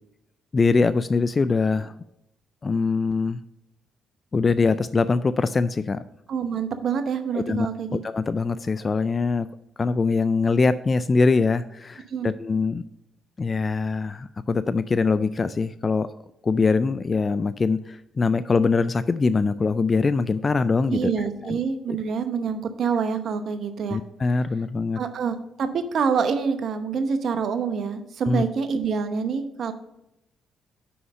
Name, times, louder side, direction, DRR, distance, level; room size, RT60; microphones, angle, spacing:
voice 1, 0.5-1.9 2.6-3.4 4.3-6.0 7.3-9.5 9.8-12.8 13.4-16.1 16.4-21.1 21.4-21.6 21.9-22.0 23.9-25.0 28.3-28.4, left 4 dB, 35° left, 14 dB, 0.3 m, -23 dB
voice 2, 6.3-8.0 12.1-12.3 20.9-24.0 25.0-29.7, right 6 dB, 65° right, 9 dB, 0.8 m, -26 dB
5.7 x 5.4 x 6.5 m, 0.85 s
supercardioid pair, 65°, 0 cm